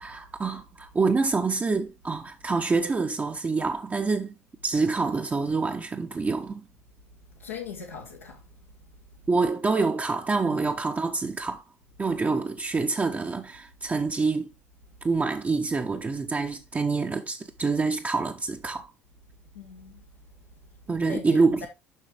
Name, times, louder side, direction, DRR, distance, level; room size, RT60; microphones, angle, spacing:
voice 1, 0.0-4.3 4.6-6.7 9.3-11.6 12.0-14.5 15.0-18.9 20.9-21.7, right 4 dB, 25° right, 0.8 m, -26 dB
voice 2, 7.4-8.4 10.5-10.7 12.3-12.4 19.5-20.0 21.0-21.7, left 5 dB, 85° left, 1.5 m, -39 dB
7.4 x 5.7 x 3.4 m
figure-of-eight pair, 60°, 7 cm